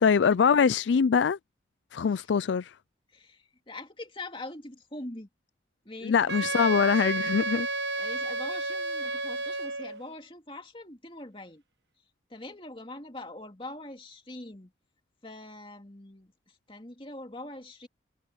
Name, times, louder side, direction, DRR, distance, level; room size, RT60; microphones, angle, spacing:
voice 1, 0.0-1.4 1.9-2.7 6.1-7.7, left 6 dB, 80° left, 0.4 m, -23 dB
voice 2, 3.1-5.3 5.8-6.4 7.9-11.6 12.3-14.7 15.2-17.9, left 2 dB, 30° left, 2.6 m, -43 dB
Wind instrument woodwind instrument, 6.3-10.0, right 2 dB, 70° right, 1.2 m, -31 dB
head